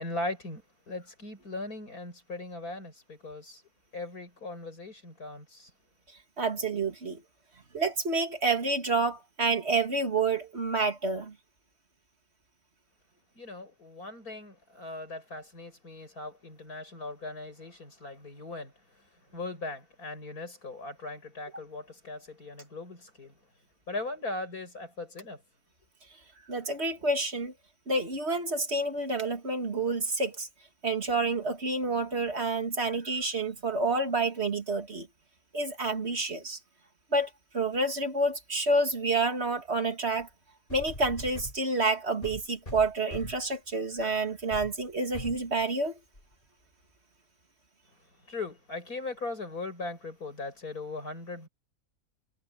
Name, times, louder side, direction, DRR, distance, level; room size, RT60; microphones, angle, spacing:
voice 1, 0.0-3.6 3.9-5.7 13.4-19.0 19.3-23.3 23.9-25.4 48.2-51.5, left 2 dB, 85° left, 7.2 m, -39 dB
voice 2, 6.4-7.2 7.7-11.3 26.5-27.5 27.9-30.5 30.8-35.1 35.5-36.6 37.1-40.3 40.7-46.0, right 3 dB, 45° right, 2.5 m, -29 dB
sound 1, 40.2-40.3 40.7-41.6 42.2-43.5 44.0-44.1 44.5-44.7 45.1-45.4 46.1-46.2, left 1 dB, 35° left, 6.1 m, -41 dB
omnidirectional pair, 1.5 m